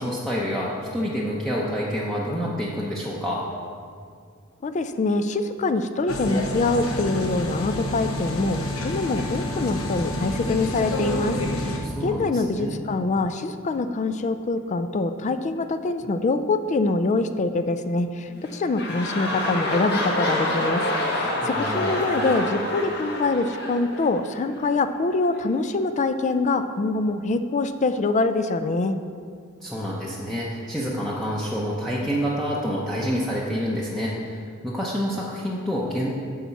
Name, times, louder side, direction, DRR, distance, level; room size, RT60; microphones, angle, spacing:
voice 1, 0.0-3.4 11.8-12.8 21.4-22.0 29.6-36.1, equal, ahead, -6 dB, 0.7 m, -28 dB
voice 2, 4.6-29.0, left 3 dB, 35° left, 10 dB, 0.3 m, -25 dB
sound 1, 6.1-11.8, left 1 dB, 75° left, 1.0 m, -28 dB
sound 2, 18.3-24.7 25.4-25.5, left 1 dB, 50° left, 1.3 m, -27 dB
8.5 x 4.2 x 6.9 m, 2.2 s
head